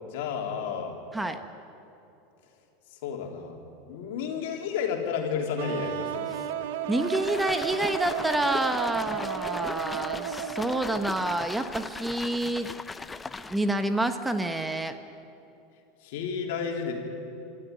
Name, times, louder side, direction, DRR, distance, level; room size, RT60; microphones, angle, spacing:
voice 1, 0.0-1.0 2.9-3.5 3.9-6.3 16.0-16.9, left 6 dB, 70° left, 2 dB, 3.5 m, -31 dB
sound 1, 5.6-11.4, right 9 dB, 75° right, 1.3 m, -34 dB
sound 2, 6.9-13.8, left 3 dB, 15° left, 0.9 m, -39 dB
voice 2, 6.9-12.7 13.5-15.0, right 1 dB, 10° right, 8 dB, 1.3 m, -28 dB
26.0 x 13.0 x 9.8 m, 2.9 s
hypercardioid pair, 100°, 0 cm